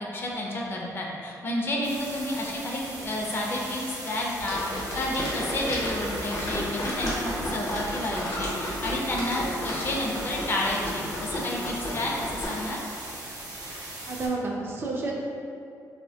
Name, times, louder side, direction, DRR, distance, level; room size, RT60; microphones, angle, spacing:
voice 1, 0.0-12.8, left 1 dB, 35° left, -2 dB, 0.4 m, -30 dB
sound 1, 1.8-14.3, right 2 dB, 75° right, 0.7 m, -40 dB
sound 2, 4.4-12.5, left 1 dB, 75° left, 0.8 m, -33 dB
voice 2, 14.1-15.1, right 3 dB, 35° right, -2 dB, 0.3 m, -30 dB
2.9 x 2.0 x 2.7 m, 2.4 s
cardioid pair, 135°, 6 cm